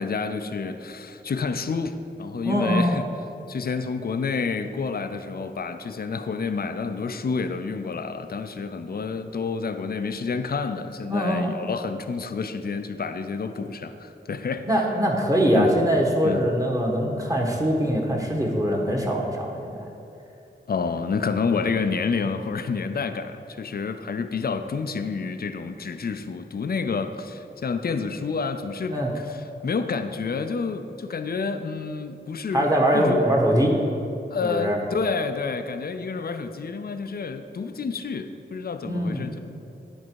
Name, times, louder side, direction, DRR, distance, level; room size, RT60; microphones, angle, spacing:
voice 1, 0.0-3.1 3.5-14.9 15.5-15.7 16.2-16.5 20.7-33.3 34.3-39.4, left 5 dB, 50° left, 9 dB, 0.5 m, -29 dB
voice 2, 2.4-3.0 11.1-11.5 14.7-19.8 28.9-29.1 32.5-33.7 34.4-34.8 38.8-39.3, equal, 15° right, -1 dB, 1.4 m, -22 dB
9.9 x 4.5 x 4.7 m, 2.7 s
cardioid pair, 45°, 20 cm